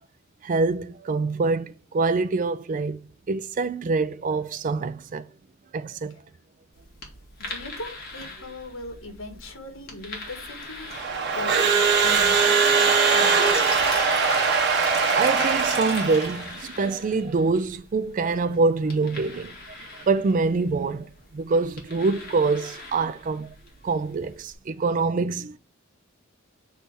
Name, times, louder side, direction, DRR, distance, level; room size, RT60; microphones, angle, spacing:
voice 1, 0.4-3.0 3.3-5.2 5.7-6.1 15.1-23.5 23.8-25.6, right 4 dB, 40° right, 0.4 m, -25 dB
sound 1, 6.7-24.5, left 2 dB, 45° left, 2.2 m, -43 dB
voice 2, 7.4-11.1 11.3-13.8, left 2 dB, 70° left, 1.8 m, -39 dB
Crowd / Alarm, 10.9-16.5, right 5 dB, 55° right, 1.1 m, -21 dB
sound 2, 13.2-16.4, left 1 dB, 30° left, 3.2 m, -34 dB
6.7 x 3.3 x 6.0 m
head